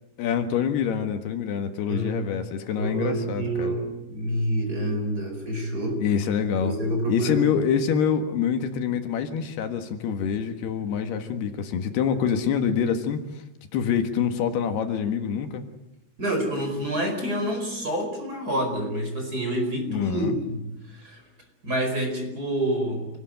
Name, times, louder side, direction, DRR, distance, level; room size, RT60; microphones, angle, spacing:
voice 1, 0.2-3.7 6.0-6.8 7.1-13.4 13.7-15.6 19.9-20.4, left 7 dB, 75° left, 7 dB, 3.6 m, -26 dB
voice 2, 1.9-2.2 2.8-6.0 6.6-7.4 16.2-21.2 21.6-23.2, right 1 dB, 20° right, 4 dB, 4.9 m, -28 dB
27.0 x 19.0 x 9.0 m, 0.92 s
omnidirectional pair, 4.7 m